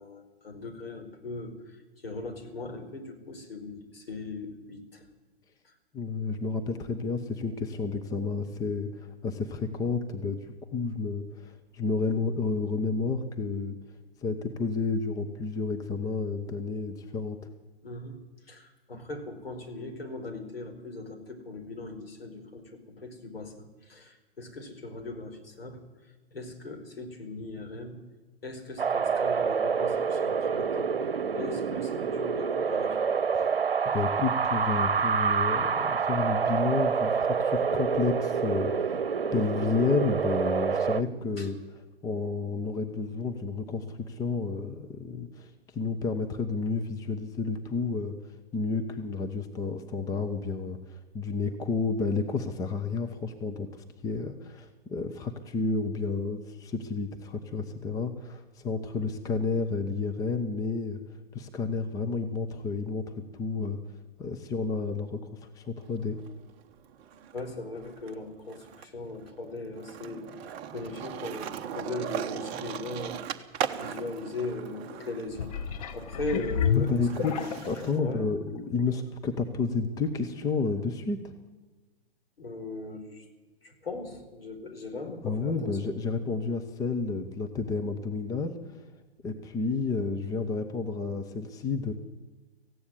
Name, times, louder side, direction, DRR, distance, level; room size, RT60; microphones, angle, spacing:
voice 1, 0.0-1.5 2.0-5.0 17.8-18.2 18.5-25.8 26.3-28.0 28.4-30.9 31.3-33.0 41.4-41.5 67.3-70.2 70.7-73.2 73.8-75.5 75.9-77.3 77.9-78.3 82.4-83.2 83.6-85.9, left 3 dB, 65° left, 4 dB, 4.7 m, -39 dB
voice 2, 5.9-13.8 14.2-17.4 33.3-33.6 33.9-39.0 39.3-48.1 48.5-61.0 61.3-63.8 64.2-66.2 76.8-77.4 77.7-81.3 85.2-88.8 89.2-91.9, left 4 dB, 10° left, 6 dB, 1.0 m, -31 dB
Wind, 28.8-41.0, right 6 dB, 60° right, 1.1 m, -27 dB
Skateboard, 65.8-67.4 67.7-78.0, right 8 dB, 20° right, 1.0 m, -39 dB
sound 1, 75.3-77.9 78.6-78.7, left 8 dB, 35° left, 0.9 m, -30 dB
17.0 x 15.5 x 9.9 m, 1.2 s
figure-of-eight pair, 120°, 31 cm